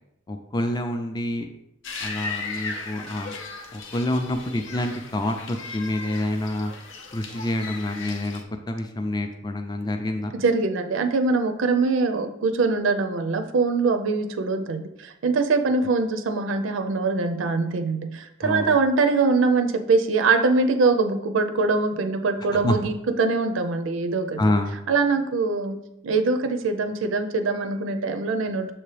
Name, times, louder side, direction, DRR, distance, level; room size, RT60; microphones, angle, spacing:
voice 1, 0.3-1.5 2.0-3.4 3.7-6.7 7.1-8.4 8.7-10.3 18.4-18.8 22.6-22.8 24.4-24.8, left 1 dB, 20° left, 5 dB, 0.4 m, -27 dB
sound 1, 1.8-8.4, left 4 dB, 70° left, 0.7 m, -37 dB
voice 2, 10.3-24.5 24.9-25.8 26.0-28.7, right 4 dB, 70° right, 7 dB, 0.5 m, -23 dB
6.8 x 2.8 x 4.9 m, 0.85 s
head